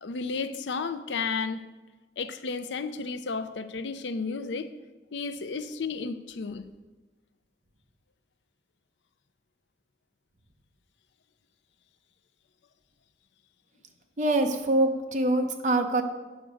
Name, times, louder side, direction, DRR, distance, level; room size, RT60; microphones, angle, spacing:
voice 1, 0.0-1.6 2.2-4.7 5.1-6.7, left 4 dB, 80° left, 0.5 m, -32 dB
voice 2, 14.2-16.0, right 2 dB, 40° right, 0.9 m, -24 dB
9.0 x 5.0 x 6.3 m
head